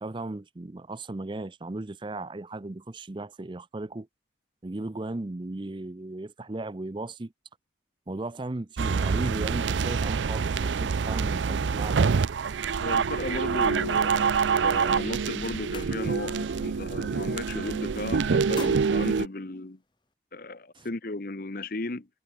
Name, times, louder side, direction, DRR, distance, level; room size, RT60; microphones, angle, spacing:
voice 1, 0.0-4.1 4.6-7.3 8.1-12.1 20.7-20.9, right 2 dB, 25° right, 0.5 m, -36 dB
sound 1, 8.8-19.3, right 5 dB, 85° right, 0.5 m, -26 dB
voice 2, 12.8-19.8 20.3-22.1, left 2 dB, 55° left, 1.1 m, -35 dB
sound 2, 15.5-16.4 16.8-17.1 17.4-17.9 18.3-20.1, left 5 dB, 25° left, 1.4 m, -47 dB
head